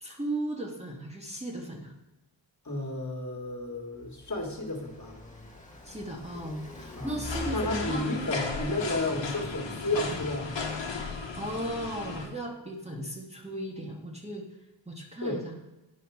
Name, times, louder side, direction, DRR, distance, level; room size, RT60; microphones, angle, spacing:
voice 1, 0.0-1.9 5.8-8.0 11.4-14.5 14.9-15.6, right 1 dB, 15° right, -1 dB, 1.1 m, -36 dB
voice 2, 2.6-5.2 7.0-7.2 7.5-10.6 15.2-15.4, left 2 dB, 40° left, 1 dB, 1.7 m, -32 dB
Car passing by, 3.5-9.0, left 1 dB, 15° left, 1.5 m, -44 dB
sound 1, 7.2-12.3, left 4 dB, 70° left, 1.2 m, -35 dB
9.7 x 4.9 x 4.7 m, 1.0 s
wide cardioid pair, 90°, 44 cm